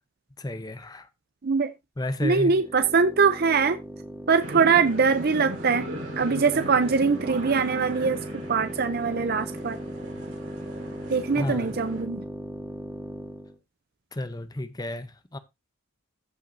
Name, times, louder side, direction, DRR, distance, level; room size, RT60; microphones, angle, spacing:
voice 1, 0.4-1.1 2.0-2.6 11.3-11.8 14.1-15.4, left 1 dB, 15° left, 0.6 m, -32 dB
voice 2, 2.2-3.8 4.3-5.9 6.2-8.2 8.5-9.8 11.1-12.2, right 5 dB, 45° right, 0.6 m, -22 dB
sound 1, 2.4-13.6, right 1 dB, 10° right, 1.5 m, -38 dB
sound 2, 4.4-12.0, right 1 dB, 85° right, 5.0 m, -38 dB
14.5 x 5.5 x 2.7 m
head